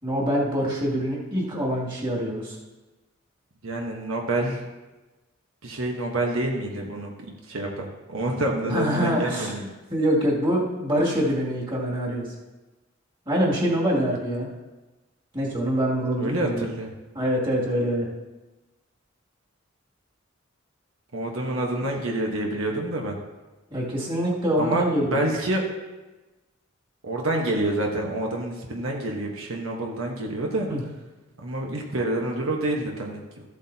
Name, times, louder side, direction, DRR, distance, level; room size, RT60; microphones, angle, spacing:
voice 1, 0.0-2.6 8.7-9.5 9.9-12.3 13.3-14.5 15.3-16.6 17.1-18.1 23.7-25.2 30.7-30.8, equal, 25° right, -5 dB, 2.5 m, -25 dB
voice 2, 3.6-4.7 5.6-9.7 16.2-16.9 21.1-23.2 24.6-25.7 27.0-30.7 31.4-33.4, right 1 dB, 85° right, 0 dB, 1.3 m, -28 dB
14.0 x 8.2 x 2.8 m, 1.1 s
head